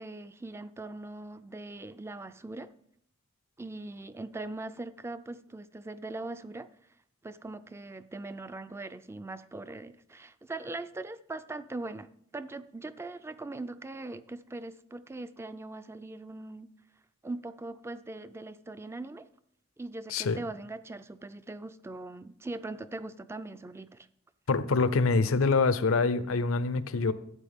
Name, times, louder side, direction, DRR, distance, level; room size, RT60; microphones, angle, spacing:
voice 1, 0.0-2.7 3.6-6.7 7.2-16.7 17.2-19.3 19.8-24.1, right 2 dB, 10° right, 13 dB, 0.3 m, -41 dB
voice 2, 24.5-27.1, left 4 dB, 80° left, 14 dB, 0.6 m, -25 dB
12.5 x 8.3 x 3.5 m, 0.68 s
head